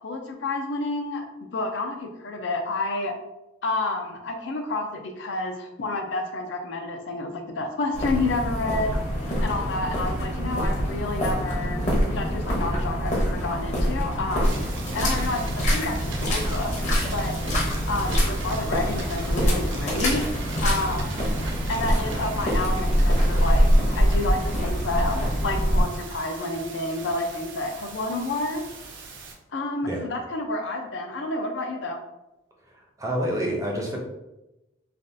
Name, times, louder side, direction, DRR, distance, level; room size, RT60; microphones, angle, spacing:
voice 1, 0.0-1.2 1.5-3.2 3.6-8.9 9.4-11.8 12.1-14.6 14.9-16.7 17.1-17.4 17.9-20.2 20.6-21.2 21.7-28.6 29.5-32.0, left 2 dB, 65° left, 4 dB, 0.4 m, -29 dB
sound 1, 7.9-25.8, equal, 35° left, 0.8 m, -24 dB
sound 2, 8.2-20.1, left 3 dB, 85° left, 0.9 m, -43 dB
sound 3, 14.4-29.3, right 3 dB, 65° right, 0.5 m, -39 dB
voice 2, 33.0-34.0, equal, 15° right, -1 dB, 0.5 m, -27 dB
3.4 x 2.4 x 2.6 m, 0.96 s
head